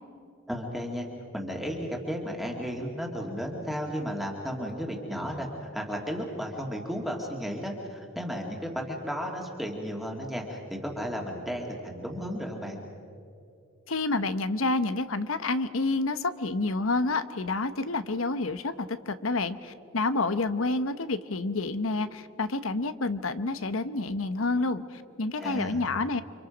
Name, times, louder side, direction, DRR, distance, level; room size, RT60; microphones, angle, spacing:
voice 1, 0.5-1.1 1.3-5.5 5.7-12.8 25.4-25.8, equal, ahead, -1 dB, 2.2 m, -34 dB
voice 2, 13.9-26.2, left 3 dB, 85° left, 12 dB, 1.0 m, -29 dB
29.5 x 25.5 x 5.2 m, 2.6 s
head